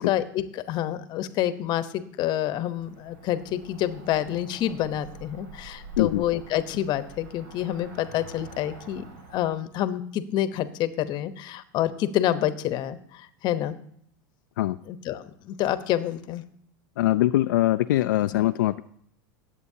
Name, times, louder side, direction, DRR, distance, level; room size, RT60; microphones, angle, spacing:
voice 1, 0.0-9.0 9.3-13.7 14.9-16.4 18.3-18.4, left 12 dB, 45° left, 13 dB, 0.9 m, -28 dB
Cricket / Motor vehicle (road), 2.6-9.5, right 2 dB, 75° right, 2.9 m, -46 dB
voice 2, 17.0-18.8, left 15 dB, 85° left, 9 dB, 0.4 m, -22 dB
18.0 x 8.1 x 2.8 m, 0.66 s
supercardioid pair, 115°, 10 cm